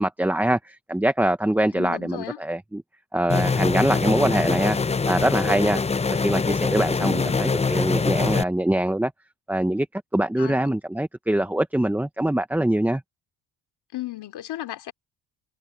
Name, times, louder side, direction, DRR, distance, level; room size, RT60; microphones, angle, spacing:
voice 1, 0.0-2.8 3.1-4.8 5.0-5.8 6.1-9.1 9.5-9.9 10.1-13.0, right 1 dB, 5° right, 1.0 m, -23 dB
voice 2, 1.7-2.4 7.0-7.3 10.4-10.6 13.9-14.9, left 15 dB, 70° left, 2.9 m, -34 dB
sound 1, 3.3-8.4, left 4 dB, 15° left, 0.6 m, -23 dB
cardioid pair, 100°, 40 cm